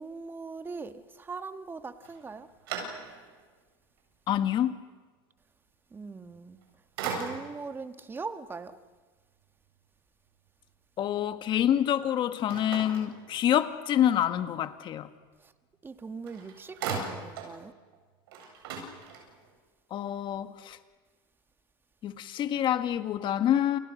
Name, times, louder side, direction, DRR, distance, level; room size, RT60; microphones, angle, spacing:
voice 1, 0.0-2.5 5.9-6.6 7.0-8.8 15.4-15.5 15.8-17.7, right 4 dB, 20° right, 1.6 m, -41 dB
sound 1, 2.0-3.4 4.0-4.1 6.3-6.6 7.0-7.7 12.5-13.8 15.9-16.0 16.3-17.6 17.9-18.0 18.3-19.5, right 5 dB, 90° right, 7.6 m, -38 dB
voice 2, 4.3-4.8 11.0-15.1 19.9-20.8 22.0-23.8, left 10 dB, 45° left, 1.8 m, -27 dB
29.5 x 29.0 x 6.5 m
supercardioid pair, 115°, 12 cm